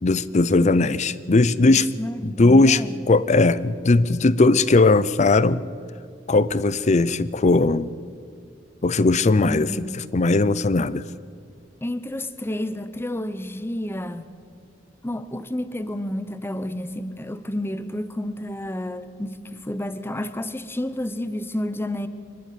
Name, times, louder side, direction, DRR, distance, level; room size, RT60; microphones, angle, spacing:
voice 1, 0.0-1.9 2.2-2.8 3.1-5.6 6.3-7.9 8.8-9.7 10.1-11.0, left 3 dB, 40° left, 17 dB, 0.5 m, -18 dB
voice 2, 1.6-3.0 9.5-10.0 11.8-14.3 15.0-22.1, left 1 dB, 10° left, 12 dB, 0.8 m, -30 dB
25.0 x 11.0 x 9.3 m, 2.2 s
head